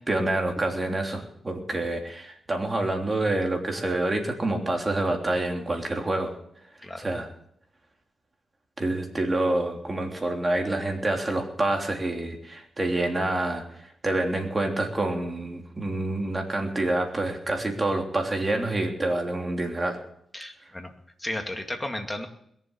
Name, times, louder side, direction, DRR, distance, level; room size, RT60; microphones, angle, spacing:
voice 1, 0.0-6.3 7.0-7.3 8.8-20.0, right 2 dB, 30° right, 2 dB, 3.3 m, -27 dB
voice 2, 20.3-20.9 21.2-22.3, left 1 dB, 15° left, 4 dB, 2.4 m, -34 dB
21.5 x 7.4 x 8.1 m, 0.71 s
cardioid pair, 75°, 0 cm